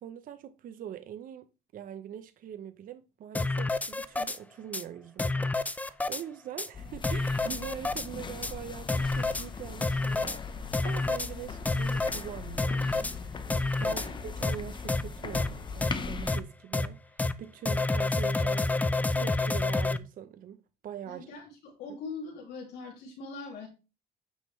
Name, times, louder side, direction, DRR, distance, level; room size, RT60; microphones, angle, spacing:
voice 1, 0.0-1.5 1.7-12.9 13.5-20.6 20.8-21.3 21.9-22.0, right 10 dB, 55° right, 0.7 m, -43 dB
sound 1, 3.3-4.4 4.7-4.8 5.2-6.2 6.6-6.7 7.0-8.1 8.4-8.5 8.9-9.4 9.8-10.4 10.7-11.3 11.6-12.2 12.6-13.1 13.5-14.1 14.4-14.6 14.9-15.0 15.3-15.5 15.8-15.9 16.3-16.4 16.7-16.9 17.2-17.3 17.6-20.0, left 3 dB, 10° left, 0.5 m, -28 dB
sound 2, 6.7-16.4, left 5 dB, 30° left, 0.9 m, -39 dB
voice 2, 13.8-14.3 21.1-23.7, left 4 dB, 80° left, 2.7 m, -42 dB
8.8 x 5.5 x 3.2 m
cardioid pair, 110°, 17 cm